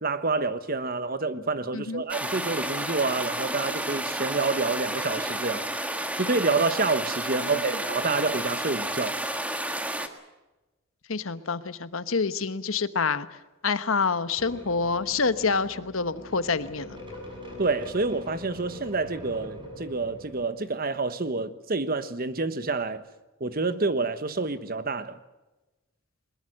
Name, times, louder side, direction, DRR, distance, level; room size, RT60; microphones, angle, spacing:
voice 1, 0.0-5.7 6.2-9.2 17.6-23.0 23.4-25.2, right 3 dB, 45° right, 1.2 m, -28 dB
sound 1, 2.1-10.1, right 1 dB, 5° right, 1.5 m, -31 dB
voice 2, 11.1-17.0, left 4 dB, 80° left, 1.1 m, -27 dB
sound 2, 14.4-20.4, left 1 dB, 25° right, 6.3 m, -43 dB
22.0 x 21.0 x 7.8 m
head